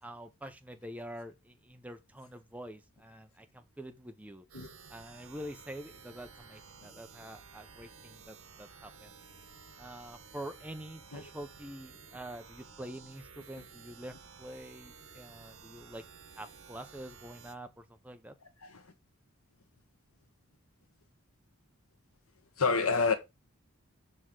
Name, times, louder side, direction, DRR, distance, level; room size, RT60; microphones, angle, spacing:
voice 1, 0.0-4.4 4.9-9.1 9.8-16.0 16.4-18.3, right 1 dB, 5° right, 0.7 m, -46 dB
sound 1, 4.5-17.5, right 5 dB, 75° right, 1.4 m, -54 dB
voice 2, 18.6-18.9 22.6-23.1, left 4 dB, 80° left, 1.3 m, -29 dB
6.4 x 3.7 x 6.1 m
head